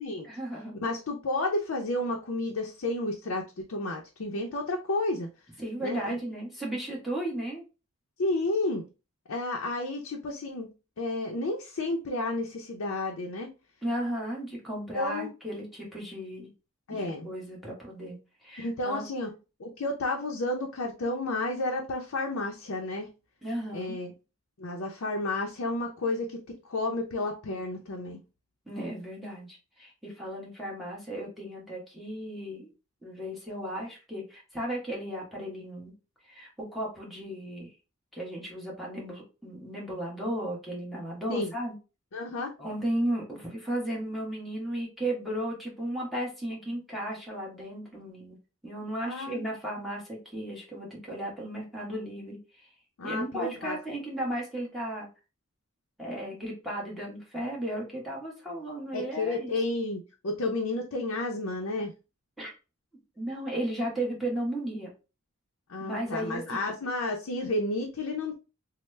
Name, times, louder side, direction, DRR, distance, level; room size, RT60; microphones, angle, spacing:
voice 1, 0.2-0.8 5.6-7.6 13.8-16.5 16.9-18.2 18.4-19.0 23.4-24.0 28.7-32.7 33.0-35.9 36.3-37.7 38.1-41.7 42.6-48.4 48.6-52.4 53.0-55.1 56.0-59.5 62.4-62.5 63.2-64.9 65.8-66.7, right 1 dB, ahead, -4 dB, 1.1 m, -35 dB
voice 2, 0.8-5.3 5.8-6.2 8.2-8.9 9.3-10.7 11.0-13.5 14.9-15.3 16.9-17.3 18.6-19.3 19.6-23.1 23.7-24.1 24.6-28.2 41.3-41.5 42.1-42.5 49.0-49.5 53.0-53.8 58.9-61.9 65.7-68.3, left 2 dB, 80° left, 1 dB, 0.5 m, -31 dB
3.1 x 2.0 x 3.1 m, 0.30 s
head